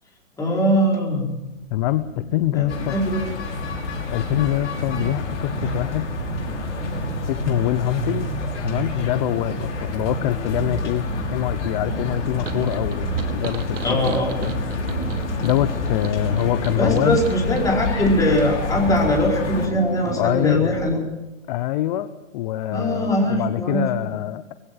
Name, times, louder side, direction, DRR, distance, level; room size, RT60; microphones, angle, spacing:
voice 1, 0.4-1.3 2.5-3.3 3.6-3.7 13.8-14.5 16.8-21.0 22.7-24.1, equal, 10° left, -2 dB, 4.9 m, -21 dB
sound 1, 1.5-21.0, right 4 dB, 35° right, 6.6 m, -32 dB
voice 2, 1.7-2.9 4.1-6.1 7.3-8.3 8.6-14.0 14.4-14.8 15.4-17.2 20.2-20.7 21.5-22.1 22.3-24.5, left 14 dB, 35° left, 12 dB, 0.9 m, -24 dB
sound 2, 2.7-19.7, left 4 dB, 60° left, 5.8 m, -29 dB
sound 3, 12.4-17.7, right 7 dB, 70° right, 2.0 m, -37 dB
21.5 x 16.5 x 7.8 m, 1.0 s
hypercardioid pair, 140°, 39 cm